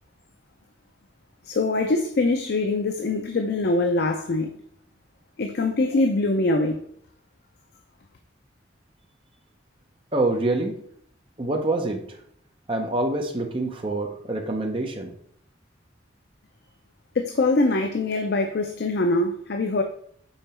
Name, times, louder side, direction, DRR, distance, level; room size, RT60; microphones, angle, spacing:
voice 1, 1.5-4.5 5.4-6.8 17.2-19.8, left 2 dB, 55° left, 0.5 m, -23 dB
voice 2, 10.1-10.7 11.4-12.2 12.7-15.1, right 2 dB, 25° right, 0.7 m, -26 dB
5.6 x 4.0 x 4.3 m
head